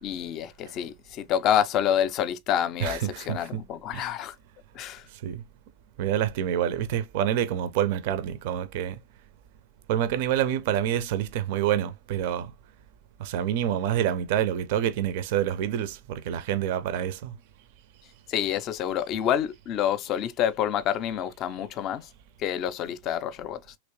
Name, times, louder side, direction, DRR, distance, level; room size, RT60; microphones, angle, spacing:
voice 1, 0.0-4.4 4.7-5.1 18.3-22.1 22.4-23.8, left 10 dB, 35° left, 0.5 m, -28 dB
voice 2, 2.8-3.6 3.9-4.1 5.1-5.4 6.0-9.0 9.9-12.5 13.2-17.3, right 10 dB, 50° right, 0.4 m, -27 dB
3.1 x 2.9 x 2.9 m
figure-of-eight pair, 90°, 0 cm